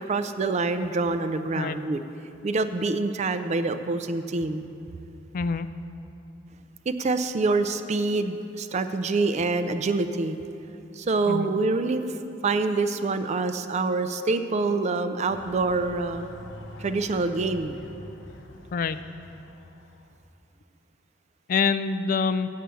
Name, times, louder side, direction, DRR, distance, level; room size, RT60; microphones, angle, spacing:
voice 1, 0.0-2.0 2.4-4.7 6.9-10.4 11.0-16.3 16.8-17.8, right 3 dB, 35° right, 10 dB, 0.4 m, -26 dB
voice 2, 5.3-5.7 11.3-11.5 18.7-19.0 21.5-22.5, left 5 dB, 45° left, 12 dB, 0.3 m, -25 dB
sound 1, 15.3-20.2, left 1 dB, 90° left, 0.7 m, -45 dB
8.2 x 7.6 x 6.8 m, 2.9 s
head